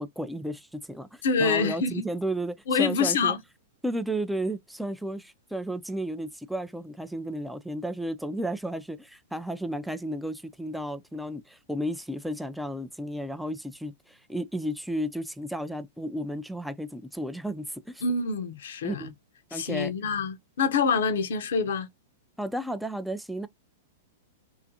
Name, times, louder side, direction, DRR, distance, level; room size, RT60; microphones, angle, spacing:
voice 1, 0.0-3.4 3.8-18.0 18.8-19.1 19.5-19.9 22.4-23.5, right 1 dB, ahead, 0.3 m, -33 dB
voice 2, 1.2-2.1 2.7-3.4 18.0-19.1 19.5-21.9, left 5 dB, 70° left, 0.5 m, -26 dB
2.4 x 2.4 x 2.6 m
hypercardioid pair, 110°, 0 cm